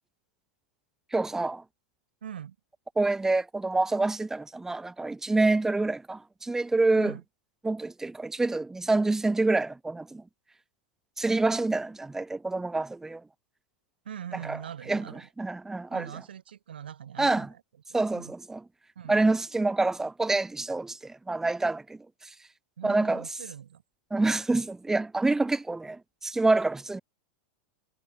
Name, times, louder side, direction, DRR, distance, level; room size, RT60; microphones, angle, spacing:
voice 1, 1.1-1.6 3.0-7.1 7.6-10.2 11.2-13.2 14.4-14.6 14.9-15.0 15.4-16.0 17.2-17.5 17.9-18.6 19.1-22.3 22.8-23.2 24.1-27.0, right 2 dB, 10° right, 1.5 m, -27 dB
voice 2, 2.2-2.6 7.0-7.2 14.0-15.3 15.9-17.6 17.9-18.3 19.0-19.2 22.8-23.8, right 9 dB, 85° right, 3.7 m, -42 dB
hypercardioid pair, 110°, 5 cm